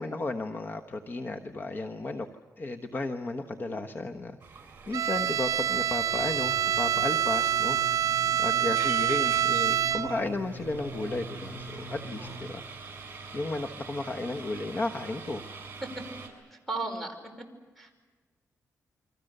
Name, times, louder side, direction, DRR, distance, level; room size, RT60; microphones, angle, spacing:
voice 1, 0.0-2.3 2.6-4.4 4.9-7.8 8.4-12.6 13.3-15.4, left 2 dB, 35° left, 5 dB, 1.2 m, -33 dB
sound 1, 4.4-16.3, right 4 dB, 30° right, 6.4 m, -45 dB
Bowed string instrument, 4.9-10.4, right 10 dB, 85° right, 0.7 m, -26 dB
sound 2, 6.1-12.5, left 1 dB, 85° left, 3.9 m, -43 dB
voice 2, 16.5-17.2 17.8-17.9, right 3 dB, 5° left, 5 dB, 5.3 m, -36 dB
29.0 x 24.5 x 6.8 m, 1.3 s
wide cardioid pair, 125°, 6 cm